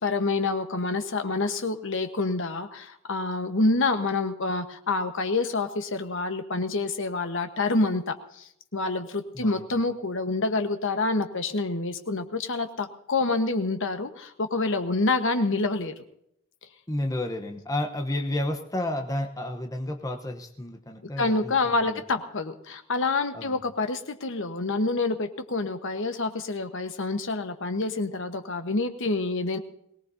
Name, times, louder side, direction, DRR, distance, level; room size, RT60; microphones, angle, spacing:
voice 1, 0.0-15.9 21.2-29.6, left 3 dB, 60° left, 8 dB, 1.2 m, -27 dB
voice 2, 9.3-9.8 16.9-22.0 23.3-23.6, left 1 dB, 15° left, 4 dB, 0.9 m, -31 dB
22.5 x 18.0 x 2.7 m, 0.73 s
head